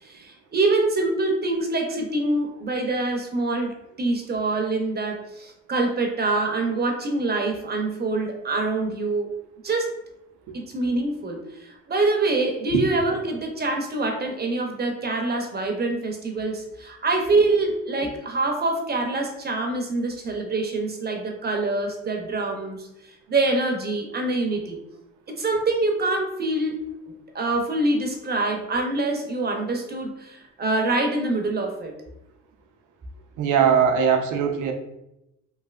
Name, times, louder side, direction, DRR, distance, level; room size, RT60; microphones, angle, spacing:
voice 1, 0.0-9.3 9.6-9.9 10.5-22.9 23.3-24.8 25.3-26.8 27.3-31.9, right 2 dB, 35° right, 2 dB, 0.6 m, -25 dB
voice 2, 12.7-13.2 33.4-34.7, right 7 dB, 85° right, 5 dB, 0.5 m, -21 dB
3.1 x 2.6 x 2.4 m, 0.86 s
cardioid pair, 90°, 30 cm